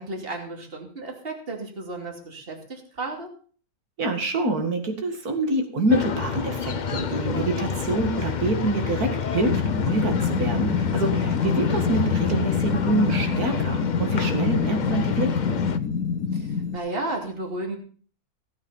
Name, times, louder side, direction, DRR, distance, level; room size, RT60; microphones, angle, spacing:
voice 1, 0.0-3.3 16.3-17.8, right 2 dB, 40° right, 2 dB, 3.0 m, -33 dB
voice 2, 4.0-15.6, right 2 dB, 75° right, 5 dB, 2.6 m, -26 dB
sound 1, 5.9-15.8, left 6 dB, 40° left, 0.7 m, -29 dB
sound 2, 9.4-16.8, left 6 dB, 70° left, 1.3 m, -26 dB
17.0 x 9.1 x 5.6 m, 0.43 s
omnidirectional pair, 1.6 m